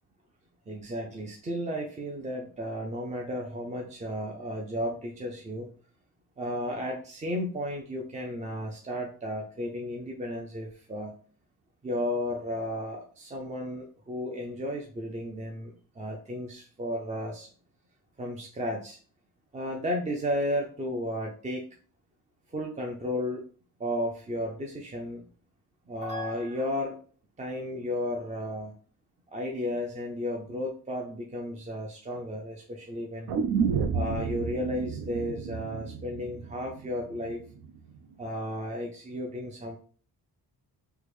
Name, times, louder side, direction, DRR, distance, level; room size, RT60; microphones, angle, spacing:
voice 1, 0.7-5.7 6.4-11.2 11.8-17.5 18.2-19.0 19.5-21.7 22.5-23.5 23.8-25.3 25.9-27.0 27.4-28.7 29.3-33.3 33.9-37.4 38.2-39.8, left 1 dB, 20° right, 0 dB, 0.4 m, -33 dB
sound 1, 33.3-37.3 37.6-37.7, right 6 dB, 85° right, 0.5 m, -31 dB
3.4 x 2.1 x 3.1 m, 0.42 s
cardioid pair, 105°, 38 cm